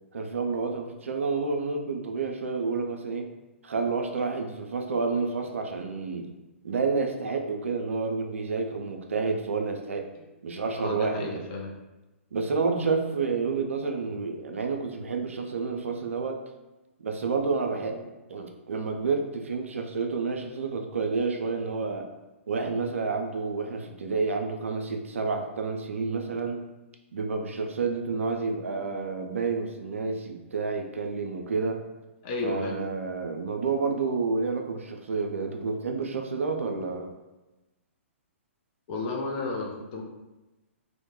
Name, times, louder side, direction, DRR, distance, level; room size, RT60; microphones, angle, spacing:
voice 1, 0.1-3.3 3.6-6.3 6.6-10.1 10.4-11.4 12.3-16.4 17.0-18.0 18.3-22.1 22.5-26.6 27.1-31.8 32.4-37.1, right 4 dB, 75° right, 3 dB, 0.3 m, -29 dB
voice 2, 10.7-11.7 17.9-18.1 32.2-32.8 38.9-40.0, left 3 dB, 35° left, 0 dB, 0.5 m, -33 dB
2.1 x 2.1 x 2.9 m, 1.1 s
figure-of-eight pair, 120°, 7 cm